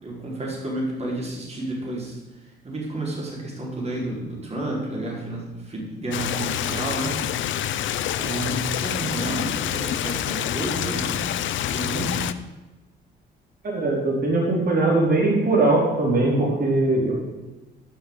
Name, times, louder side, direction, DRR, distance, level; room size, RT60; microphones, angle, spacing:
voice 1, 0.0-7.5 8.2-11.2 11.6-12.3, right 2 dB, 30° right, -2 dB, 4.6 m, -31 dB
Stream, 6.1-12.3, left 11 dB, 75° left, 0.7 m, -27 dB
voice 2, 13.6-17.1, right 2 dB, 50° right, -2 dB, 4.3 m, -20 dB
12.5 x 6.5 x 8.2 m, 1.1 s
cardioid pair, 90°, 20 cm